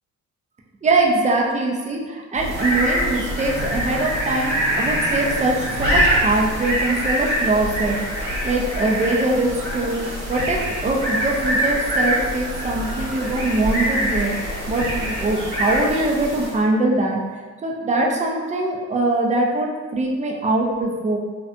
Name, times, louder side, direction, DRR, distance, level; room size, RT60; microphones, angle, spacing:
voice 1, 0.8-10.0 10.3-14.3 14.7-17.2 17.6-21.2, right 2 dB, 25° right, -1 dB, 0.4 m, -22 dB
sound 1, 2.3-16.7, equal, 70° right, 1.0 m, -24 dB
2.5 x 2.2 x 2.5 m, 1.4 s
cardioid pair, 90°, 30 cm